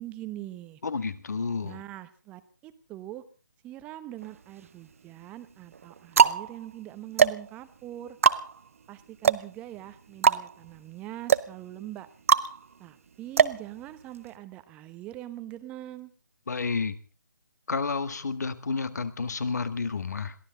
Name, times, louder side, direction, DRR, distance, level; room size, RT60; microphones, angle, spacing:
voice 1, 0.0-0.8 1.6-3.2 3.6-8.2 8.9-12.1 12.8-16.1, right 14 dB, 10° right, 12 dB, 0.9 m, -42 dB
voice 2, 0.8-1.8 16.5-16.9 17.7-20.4, left 4 dB, 55° left, 13 dB, 1.7 m, -30 dB
sound 1, 4.2-4.9 5.6-14.4, right 6 dB, 45° right, 0.7 m, -25 dB
22.5 x 16.5 x 3.9 m, 0.36 s
figure-of-eight pair, 150°, 11 cm